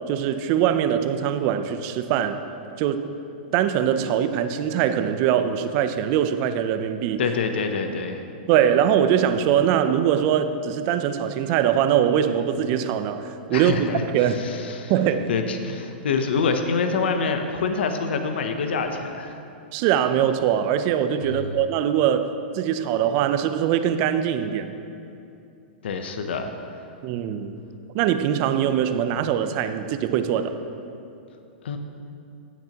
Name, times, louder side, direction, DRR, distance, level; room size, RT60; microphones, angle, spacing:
voice 1, 0.1-2.4 2.8-3.1 3.5-7.3 8.5-14.5 14.9-15.3 19.7-24.7 27.0-27.6 27.9-30.6, right 9 dB, 40° right, 10 dB, 0.5 m, -22 dB
voice 2, 7.2-8.2 13.5-19.4 21.2-21.6 25.8-26.9 31.6-31.8, left 5 dB, 80° left, 6 dB, 0.7 m, -26 dB
16.5 x 6.0 x 2.9 m, 2.7 s
hypercardioid pair, 140°, 6 cm